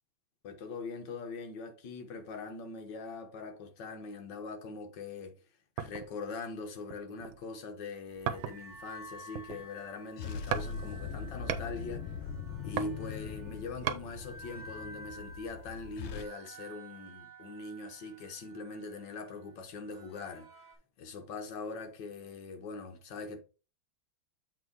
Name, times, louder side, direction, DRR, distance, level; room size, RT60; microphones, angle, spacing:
voice 1, 0.4-5.4 5.8-12.1 12.6-20.5 21.0-23.4, left 3 dB, 65° left, 1.7 m, -42 dB
sound 1, 5.8-6.2 6.8-7.5 8.3-8.8 9.2-9.9 10.5-10.7 11.0-11.7 12.5-14.0 14.6-14.7, right 9 dB, 80° right, 1.5 m, -37 dB
sound 2, 8.1-20.7, right 2 dB, 10° right, 1.9 m, -52 dB
sound 3, 8.2-8.8 10.2-16.2, left 6 dB, 85° left, 1.5 m, -41 dB
7.8 x 3.8 x 4.6 m
omnidirectional pair, 2.2 m